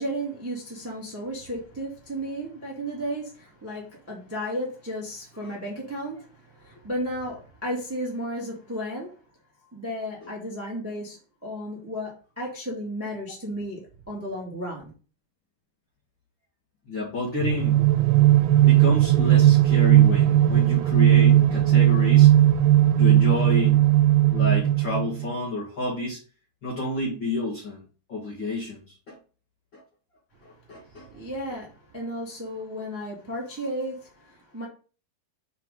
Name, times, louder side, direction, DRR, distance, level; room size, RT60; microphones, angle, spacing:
voice 1, 0.0-9.2 9.7-14.9 30.4-30.5 30.9-34.7, equal, 5° right, 1.5 m, -34 dB
voice 2, 16.9-17.8 18.6-22.3 22.9-23.8 24.3-26.2 26.6-29.2 29.7-29.8 30.4-31.1, left 2 dB, 40° left, 1.8 m, -30 dB
sound 1, 17.4-25.3, right 13 dB, 90° right, 2.6 m, -17 dB
5.7 x 5.6 x 3.9 m
omnidirectional pair, 4.3 m